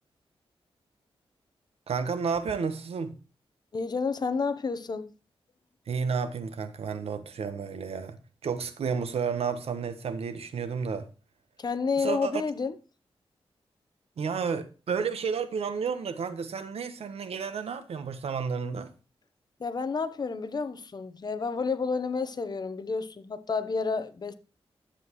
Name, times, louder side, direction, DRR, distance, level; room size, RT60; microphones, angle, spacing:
voice 1, 1.9-3.2 5.9-11.1 12.0-12.3 14.2-18.9, right 6 dB, 85° right, 1.1 m, -31 dB
voice 2, 3.7-5.1 11.6-12.7 19.6-24.3, left 4 dB, 45° left, 0.8 m, -30 dB
10.0 x 7.9 x 3.1 m
wide cardioid pair, 130°, 10 cm